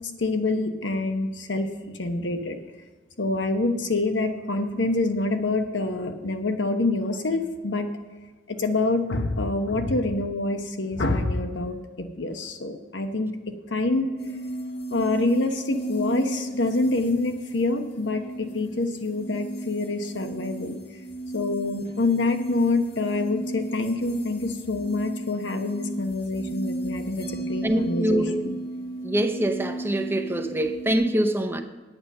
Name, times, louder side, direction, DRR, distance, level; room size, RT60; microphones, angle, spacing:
voice 1, 0.2-1.7 1.9-2.6 3.2-7.9 8.5-13.3 13.7-14.1 14.9-20.8 21.3-28.5, left 2 dB, 90° left, 1.1 m, -26 dB
sound 1, 14.2-31.0, right 1 dB, 55° left, 2.1 m, -34 dB
voice 2, 27.6-28.4 29.0-31.6, right 1 dB, 15° right, 0.7 m, -24 dB
9.2 x 8.9 x 5.5 m
head